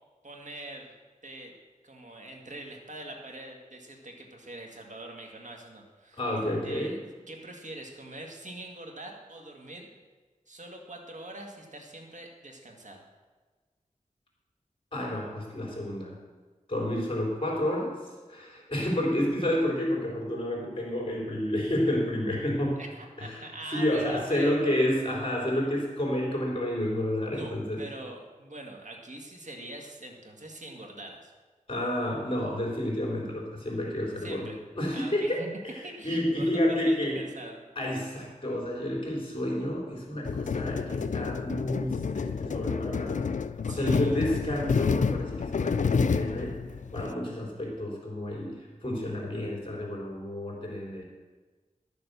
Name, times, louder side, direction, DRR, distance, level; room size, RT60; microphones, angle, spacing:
voice 1, 0.2-0.9 1.2-1.5 1.8-6.2 6.6-7.0 7.3-9.9 10.5-13.1 22.8-24.5 27.3-31.3 34.2-34.6 34.9-35.5 35.8-37.6 43.6-44.3, right 1 dB, 65° right, 2 dB, 1.9 m, -43 dB
voice 2, 6.2-7.0 14.9-16.2 16.7-17.9 18.3-22.8 23.2-27.8 31.7-37.2 37.8-43.2 43.7-46.5 46.9-51.0, left 1 dB, 40° left, -2 dB, 4.0 m, -30 dB
sound 1, 40.2-47.1, left 5 dB, 65° left, 0.4 m, -29 dB
12.0 x 7.1 x 6.9 m, 1.3 s
wide cardioid pair, 70°, 14 cm